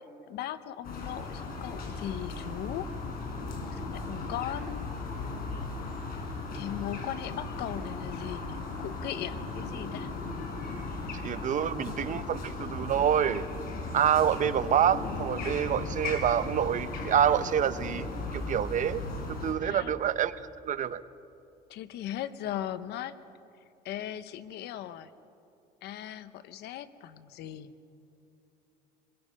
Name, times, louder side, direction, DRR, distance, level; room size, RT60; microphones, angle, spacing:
voice 1, 0.3-2.9 3.7-4.9 6.5-10.1 11.4-12.3 19.6-19.9 21.7-23.2 23.8-25.1 25.8-27.7, left 11 dB, 80° left, 13 dB, 1.0 m, -38 dB
sound 1, 0.8-19.5, left 3 dB, 60° left, 4.8 m, -37 dB
voice 2, 11.1-13.5 13.9-20.3 20.6-21.0, right 9 dB, 50° right, 14 dB, 0.8 m, -27 dB
27.5 x 22.0 x 5.4 m, 2.7 s
cardioid pair, 110°, 17 cm